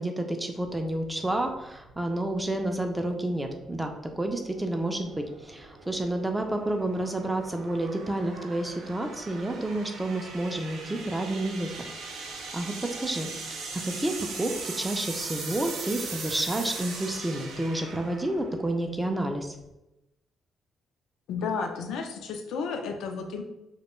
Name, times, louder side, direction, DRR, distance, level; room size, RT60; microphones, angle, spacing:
voice 1, 0.0-11.7 12.2-12.7 13.0-13.3 13.8-14.1 14.4-19.5, right 1 dB, 15° right, 4 dB, 0.3 m, -30 dB
sound 1, 0.8-19.7, right 4 dB, 90° right, 0.4 m, -40 dB
voice 2, 21.3-23.4, left 5 dB, 85° left, 4 dB, 0.3 m, -32 dB
2.2 x 2.1 x 3.0 m, 0.94 s
cardioid pair, 90°, 0 cm